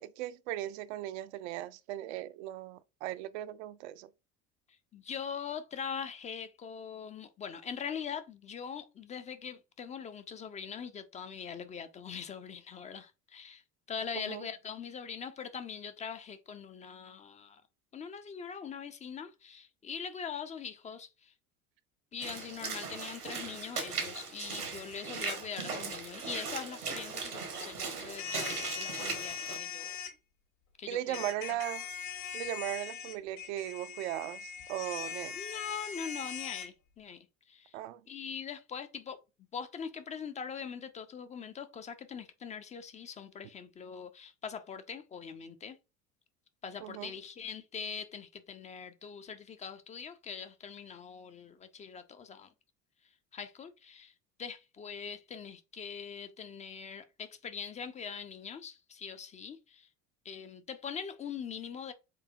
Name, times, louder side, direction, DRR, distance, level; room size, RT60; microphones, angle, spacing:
voice 1, 0.0-4.1 14.2-14.4 30.9-31.8 32.3-35.4 37.7-38.0 46.8-47.1, right 13 dB, 50° right, 0.5 m, -38 dB
voice 2, 4.9-13.6 13.9-17.6 17.9-21.3 22.1-30.0 30.8-31.3 35.3-37.8 38.1-39.2 39.5-45.8 46.6-52.5 53.3-54.1 54.4-59.9 60.2-61.9, left 6 dB, 15° left, 0.4 m, -42 dB
Walk footsteps / Splash splatter, 22.2-29.6, right 4 dB, 80° right, 1.4 m, -38 dB
sound 1, 28.2-30.1 31.1-36.7, left 7 dB, 70° left, 1.5 m, -41 dB
7.5 x 2.7 x 2.3 m
figure-of-eight pair, 65°, 45 cm